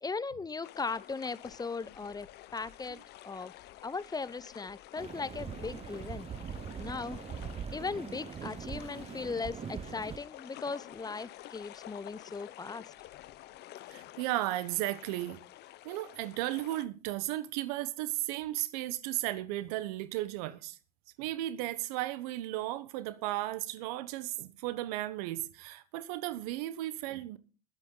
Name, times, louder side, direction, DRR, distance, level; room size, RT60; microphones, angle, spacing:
voice 1, 0.0-2.3 2.5-3.5 3.8-6.3 6.8-7.2 7.7-12.9, left 4 dB, 20° left, 0.8 m, -38 dB
sound 1, 0.6-16.9, left 15 dB, 60° left, 0.9 m, -50 dB
sound 2, 5.0-10.2, right 7 dB, 30° right, 0.8 m, -42 dB
voice 2, 13.9-15.4 15.8-20.8 21.2-27.4, right 15 dB, 80° right, 1.0 m, -35 dB
20.5 x 8.1 x 3.9 m
hypercardioid pair, 75°, 20 cm